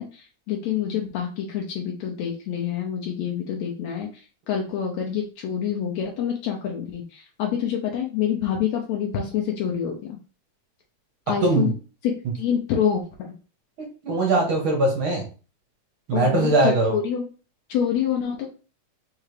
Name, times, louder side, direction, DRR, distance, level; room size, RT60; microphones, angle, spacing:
voice 1, 0.0-10.2 11.3-11.7 12.0-13.4 16.1-17.2 17.7-18.5, left 8 dB, 75° left, 0 dB, 1.9 m, -27 dB
voice 2, 14.0-15.2 16.1-16.9, right 2 dB, 55° right, -1 dB, 1.6 m, -20 dB
4.8 x 3.3 x 3.2 m, 0.35 s
omnidirectional pair, 3.3 m